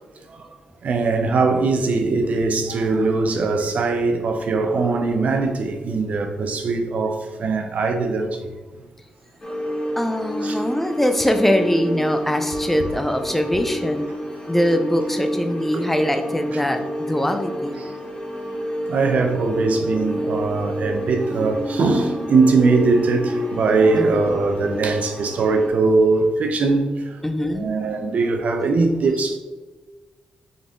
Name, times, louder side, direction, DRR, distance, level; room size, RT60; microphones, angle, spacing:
voice 1, 0.3-8.5 10.4-10.6 15.7-15.9 16.5-16.6 17.8-17.9 18.9-27.2 27.5-29.4, right 3 dB, 65° right, 0.6 m, -21 dB
sound 1, 9.4-25.7, equal, 40° left, 1.1 m, -29 dB
voice 2, 10.0-14.1 14.5-17.8 23.9-24.3 27.2-27.7, equal, 10° left, 0.6 m, -22 dB
3.9 x 3.4 x 3.7 m
cardioid pair, 65°, 3 cm